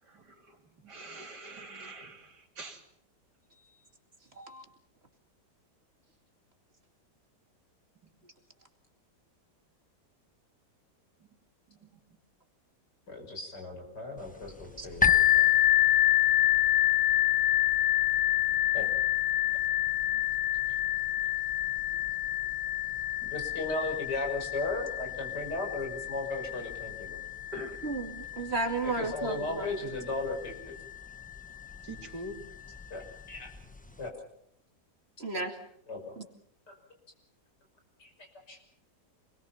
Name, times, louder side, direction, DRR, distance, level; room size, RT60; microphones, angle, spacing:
voice 1, 0.0-2.8 11.7-11.9 27.5-27.9 31.8-32.4, right 1 dB, 70° right, 2 dB, 3.8 m, -44 dB
voice 2, 13.1-15.5 18.7-18.9 20.7-20.8 23.2-27.2 28.8-30.7 32.9-33.5 34.0-34.1 35.9-36.1 36.7-36.8 38.0-38.6, left 2 dB, 75° left, 2 dB, 6.4 m, -36 dB
sound 1, 15.0-30.6 31.3-31.4 32.0-32.1, left 12 dB, 5° left, 0.9 m, -27 dB
voice 3, 27.8-29.7 35.2-35.5, right 3 dB, 35° right, 4 dB, 2.7 m, -33 dB
28.0 x 21.5 x 5.8 m, 0.72 s
omnidirectional pair, 1.9 m